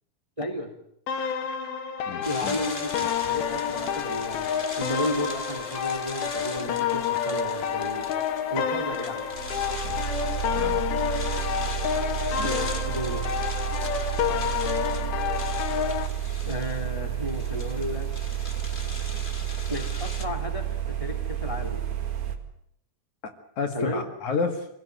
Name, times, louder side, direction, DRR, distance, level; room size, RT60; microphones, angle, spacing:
voice 1, 0.4-0.7 2.2-4.5 4.8-8.1 8.5-9.3 12.3-13.3 16.5-18.4 19.7-21.8 23.7-24.1, left 1 dB, 10° right, 4 dB, 2.6 m, -33 dB
sound 1, 1.1-16.1, left 8 dB, 85° left, 3.6 m, -29 dB
voice 2, 2.1-2.6 9.8-10.8 12.4-12.5 23.6-24.7, left 4 dB, 55° left, 6 dB, 3.1 m, -31 dB
sound 2, 2.2-20.3, left 3 dB, 30° left, 0.9 m, -41 dB
sound 3, 9.3-22.4, right 11 dB, 60° right, 3.4 m, -31 dB
26.5 x 17.5 x 9.4 m, 0.75 s
omnidirectional pair, 4.2 m